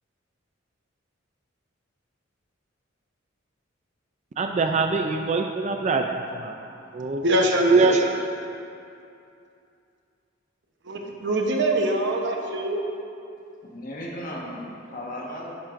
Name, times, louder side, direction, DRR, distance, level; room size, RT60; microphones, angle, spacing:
voice 1, 4.4-7.2 7.7-8.1, right 4 dB, 35° right, 4 dB, 0.4 m, -23 dB
voice 2, 7.2-7.9 10.8-12.8, right 1 dB, 60° right, 1 dB, 0.9 m, -23 dB
voice 3, 13.6-15.6, equal, 45° left, -2 dB, 1.3 m, -36 dB
10.5 x 10.0 x 2.6 m, 2.6 s
head